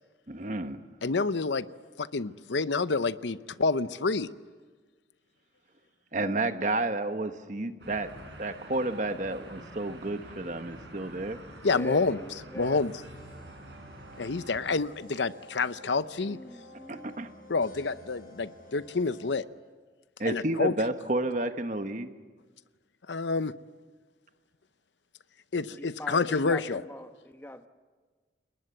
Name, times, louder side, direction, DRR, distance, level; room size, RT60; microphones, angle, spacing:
voice 1, 0.3-0.8 6.1-8.1 8.4-11.4 16.9-17.3 20.2-22.1, right 2 dB, 40° right, 9 dB, 1.2 m, -31 dB
voice 2, 1.0-1.7 2.0-4.3 11.6-12.2 12.5-12.9 14.2-16.4 17.5-19.4 20.3-20.7 23.1-23.5 25.5-26.8, left 4 dB, 80° left, 15 dB, 0.7 m, -28 dB
sound 1, 7.8-14.8, right 1 dB, 75° right, 5.4 m, -48 dB
voice 3, 11.5-12.8 16.2-17.2 25.8-27.7, equal, 10° left, 7 dB, 1.1 m, -42 dB
sound 2, 13.1-19.4, equal, 50° left, 4.7 m, -52 dB
29.5 x 20.0 x 7.9 m, 1.4 s
head